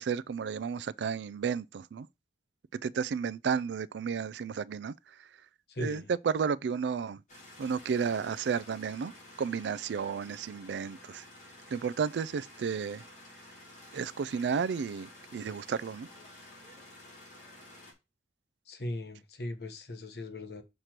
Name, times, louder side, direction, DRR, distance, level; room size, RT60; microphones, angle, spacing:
voice 1, 0.0-2.1 2.8-4.9 5.8-7.2 7.6-9.1 9.4-11.2 11.7-13.0 13.9-16.1, right 6 dB, 80° right, 0.3 m, -32 dB
voice 2, 5.7-6.1 18.7-20.6, left 1 dB, 65° left, 1.0 m, -38 dB
sound 1, 7.3-17.9, left 1 dB, 45° left, 2.9 m, -52 dB
6.6 x 3.1 x 5.8 m
head